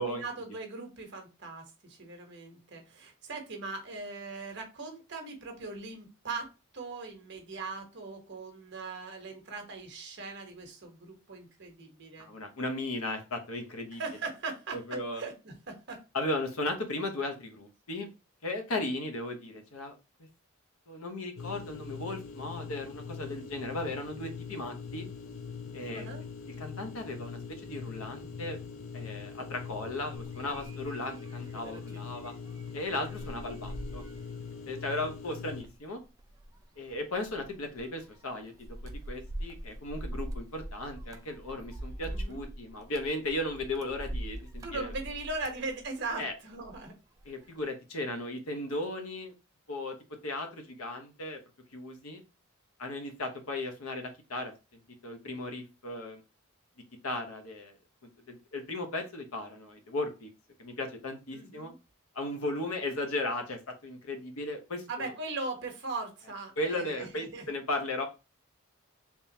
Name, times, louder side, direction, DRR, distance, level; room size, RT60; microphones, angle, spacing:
voice 1, 0.0-12.3 13.9-16.0 25.9-26.2 42.1-42.4 44.6-46.9 61.3-61.7 64.9-67.5, right 3 dB, 55° right, 3 dB, 1.0 m, -40 dB
voice 2, 12.2-14.0 14.7-15.2 16.1-18.1 18.4-19.9 20.2-20.3 20.9-25.1 25.7-26.1 26.5-28.6 28.9-32.3 32.7-34.0 34.7-36.0 36.8-44.9 46.2-46.3 47.3-49.3 49.7-50.0 50.2-51.4 51.7-52.2 52.8-56.2 57.0-57.7 58.3-60.3 60.6-61.7 62.1-65.1 66.6-68.0, left 2 dB, 85° left, 5 dB, 0.9 m, -36 dB
sound 1, 21.4-35.6, left 6 dB, 65° left, 0.5 m, -42 dB
sound 2, 30.1-46.9 47.2-47.6, right 1 dB, 15° right, 0.3 m, -43 dB
3.7 x 3.0 x 2.7 m, 0.28 s
head